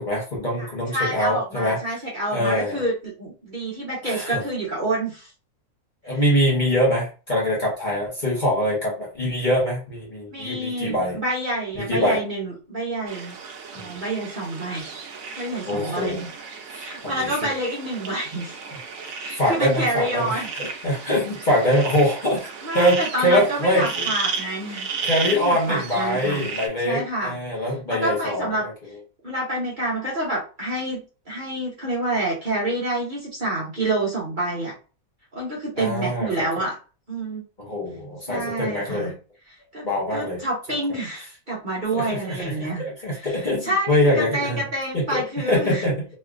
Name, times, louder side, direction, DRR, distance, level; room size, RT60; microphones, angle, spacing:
voice 1, 0.0-1.8 2.3-2.8 4.0-4.4 6.0-11.2 11.8-12.2 13.8-14.0 15.7-16.2 16.7-17.5 19.0-24.1 25.0-28.7 35.7-36.5 37.6-39.1 39.8-40.4 41.9-44.6 44.9-46.0, equal, 35° left, -5 dB, 1.2 m, -24 dB
voice 2, 0.6-5.3 6.1-6.2 10.3-13.3 13.7-15.0 15.4-16.3 16.7-18.6 19.2-20.5 22.6-24.9 25.3-26.5 26.8-27.4 27.9-28.6 29.2-34.7 35.3-36.8 37.1-37.4 38.3-39.1 39.7-39.8 40.1-42.8 43.1-43.3 43.6-43.9 44.2-45.8, right 1 dB, 35° right, -5 dB, 1.2 m, -28 dB
sound 1, 13.1-26.7, right 5 dB, 70° right, 1.0 m, -34 dB
3.2 x 2.9 x 2.5 m, 0.34 s
omnidirectional pair, 1.5 m